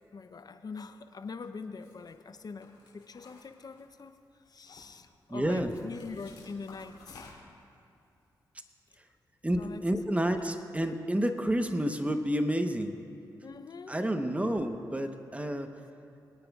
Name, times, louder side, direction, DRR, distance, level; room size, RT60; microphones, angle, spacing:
voice 1, 0.1-2.7 2.9-4.1 4.5-7.3 9.6-9.8 10.2-10.4 13.4-13.9, left 4 dB, 50° left, 8 dB, 0.7 m, -43 dB
sound 1, 1.7-2.1 2.6-4.1 4.4-5.0 5.7-7.6, left 4 dB, 75° left, 2.9 m, -53 dB
voice 2, 5.3-5.7 9.4-13.0 13.9-15.7, equal, 15° right, 7 dB, 1.0 m, -29 dB
23.0 x 9.0 x 2.4 m, 2.6 s
supercardioid pair, 45°, 9 cm